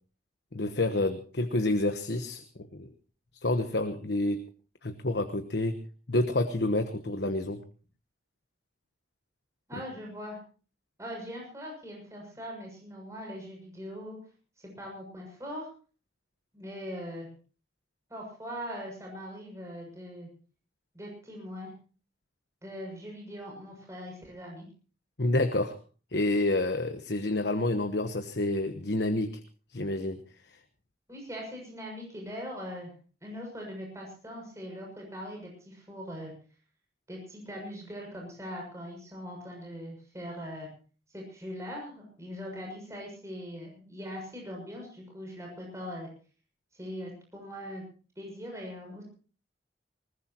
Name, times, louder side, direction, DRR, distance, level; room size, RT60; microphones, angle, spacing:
voice 1, 0.5-2.4 2.7-2.9 3.4-4.4 4.8-5.8 6.1-7.6 25.2-25.7 26.1-29.4 29.7-30.2, left 2 dB, 70° left, 8 dB, 1.2 m, -28 dB
voice 2, 9.7-10.4 11.0-14.2 14.8-15.7 16.5-17.3 18.1-20.3 20.9-21.7 22.6-24.7 31.1-32.9 33.2-36.3 37.1-40.7 41.1-46.1 46.8-47.8 48.2-49.0, equal, 15° right, -1 dB, 6.8 m, -41 dB
20.5 x 19.5 x 3.0 m, 0.38 s
head